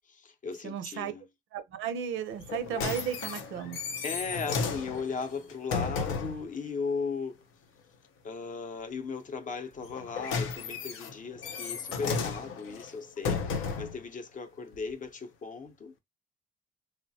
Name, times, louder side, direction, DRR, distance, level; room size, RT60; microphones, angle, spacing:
voice 1, 0.1-1.2 4.0-7.4 8.2-15.9, left 5 dB, 40° left, 0.6 m, -37 dB
voice 2, 0.6-1.1 1.5-3.8, right 9 dB, 85° right, 0.6 m, -34 dB
sound 1, 2.4-6.5 9.8-14.0 14.7-14.8, left 5 dB, 90° left, 0.6 m, -34 dB
3.1 x 2.0 x 2.7 m
cardioid pair, 90°, 20 cm